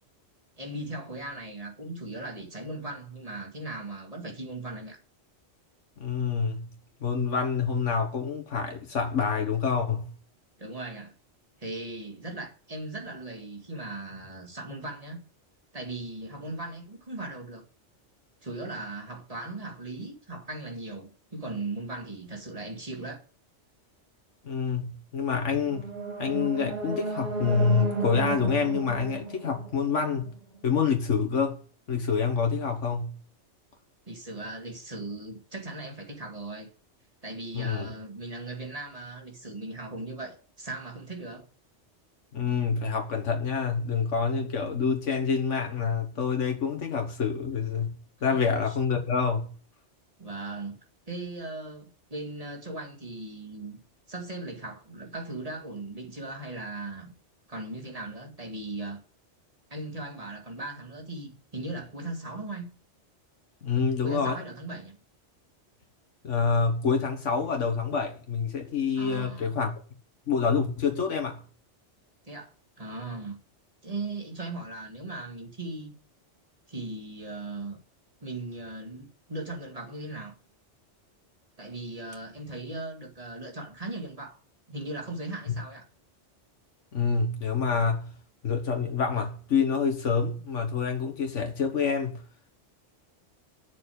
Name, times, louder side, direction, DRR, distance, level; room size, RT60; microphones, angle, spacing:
voice 1, 0.6-5.0 10.6-11.1 11.6-15.2 15.7-17.6 18.4-23.2 34.1-36.7 37.2-41.5 48.3-48.8 50.2-50.8 51.1-53.8 54.1-57.1 57.5-59.0 59.7-62.7 64.0-65.0 69.0-69.5 72.2-73.4 73.8-75.9 76.7-77.8 78.2-80.3 81.6-84.4 84.7-85.8, right 2 dB, 30° right, 2.2 m, -38 dB
voice 2, 6.0-6.7 7.0-10.1 24.4-25.9 26.2-30.3 30.6-31.6 31.9-33.1 37.5-37.9 42.3-47.9 48.2-49.5 63.6-64.4 66.2-69.7 70.3-71.4 85.5-85.6 86.9-88.1 88.4-92.2, left 5 dB, 80° left, 1.7 m, -27 dB
sound 1, 25.5-30.6, right 4 dB, 55° right, 3.5 m, -34 dB
8.4 x 6.9 x 8.5 m
omnidirectional pair, 1.2 m